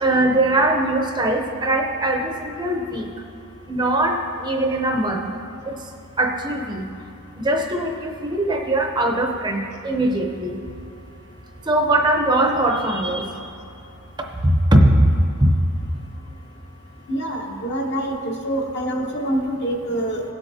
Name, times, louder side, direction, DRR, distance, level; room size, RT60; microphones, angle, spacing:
voice 1, 0.0-3.1 3.7-5.3 5.7-5.8 6.2-6.8 7.4-10.6 11.7-13.3 14.4-15.1 15.4-15.5, right 1 dB, 20° right, 2 dB, 0.7 m, -20 dB
voice 2, 17.1-20.2, right 1 dB, 50° left, 1 dB, 1.1 m, -25 dB
16.5 x 8.0 x 2.7 m, 2.6 s
head